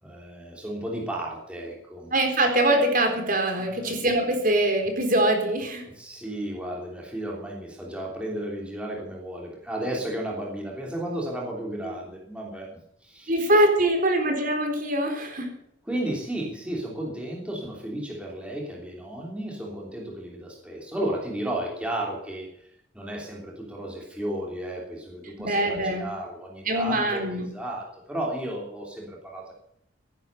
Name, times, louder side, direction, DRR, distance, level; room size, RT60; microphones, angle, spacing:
voice 1, 0.0-2.1 3.6-4.0 5.9-12.7 13.0-13.5 15.8-22.7 22.9-29.5, right 1 dB, 5° right, -2 dB, 3.2 m, -33 dB
voice 2, 2.1-5.8 11.8-11.9 13.3-15.5 25.4-26.1 26.7-27.4, right 1 dB, 40° right, 4 dB, 3.8 m, -23 dB
16.5 x 11.0 x 6.8 m, 0.76 s
head